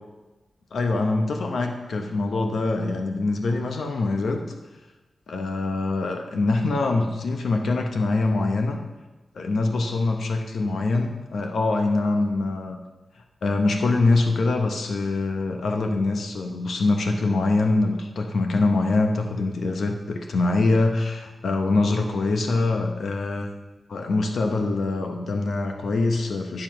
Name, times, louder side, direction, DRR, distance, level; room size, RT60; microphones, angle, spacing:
voice 1, 0.7-4.4 5.3-8.8 9.3-12.8 13.4-23.5 23.9-26.6, left 3 dB, 75° left, 4 dB, 1.1 m, -24 dB
11.0 x 7.1 x 5.8 m, 1.1 s
wide cardioid pair, 180°, 0 cm